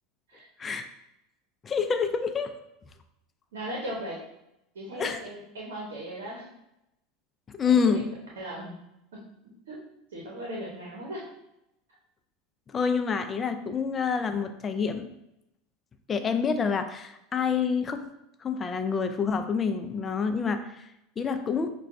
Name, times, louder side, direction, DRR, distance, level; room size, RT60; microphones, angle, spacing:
voice 1, 1.6-2.5 5.0-5.2 7.5-8.1 12.7-15.1 16.1-18.0 18.4-20.8 21.2-21.7, left 6 dB, 25° left, 8 dB, 0.3 m, -27 dB
voice 2, 3.5-4.2 4.7-6.5 7.6-8.0 8.4-8.7 9.1-9.3 9.7-9.8 10.1-11.2, right 1 dB, 90° right, -3 dB, 0.8 m, -38 dB
5.7 x 2.3 x 2.5 m, 0.87 s
supercardioid pair, 105°, 0 cm